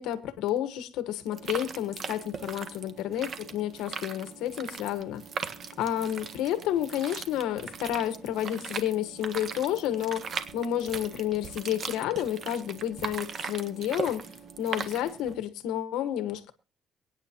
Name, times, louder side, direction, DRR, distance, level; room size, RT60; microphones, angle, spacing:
voice 1, 0.0-5.2 5.8-14.3 14.6-16.5, left 11 dB, 90° left, 1.5 m, -30 dB
sound 1, 1.3-15.3, right 6 dB, 50° right, 1.6 m, -39 dB
23.5 x 9.7 x 3.0 m
cardioid pair, 105°, 0 cm